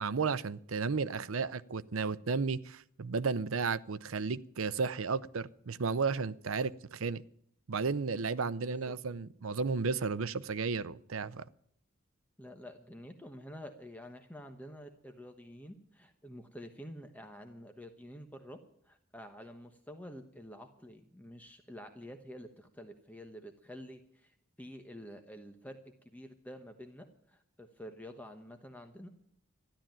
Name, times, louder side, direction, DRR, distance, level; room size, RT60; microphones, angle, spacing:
voice 1, 0.0-7.2 7.7-11.4, right 4 dB, 80° right, 0.6 m, -33 dB
voice 2, 8.6-8.9 12.4-18.6 18.8-25.8 26.0-29.1, equal, 10° left, 1.1 m, -49 dB
13.0 x 11.5 x 8.9 m
head